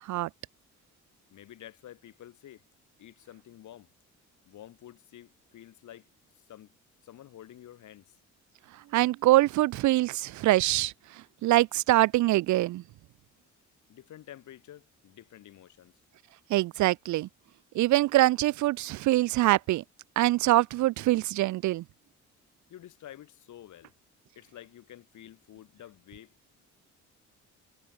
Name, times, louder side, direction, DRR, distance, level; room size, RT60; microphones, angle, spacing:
voice 1, 1.3-2.6 3.0-3.9 4.5-6.1 6.5-6.7 7.0-8.2 13.9-16.0 22.7-23.9 24.4-26.4, left 12 dB, 75° left, 7.5 m, -50 dB
voice 2, 8.9-10.9 11.4-12.8 16.5-17.3 17.7-19.8 20.2-21.8, right 17 dB, 70° right, 0.5 m, -24 dB
cardioid pair, 90°, 30 cm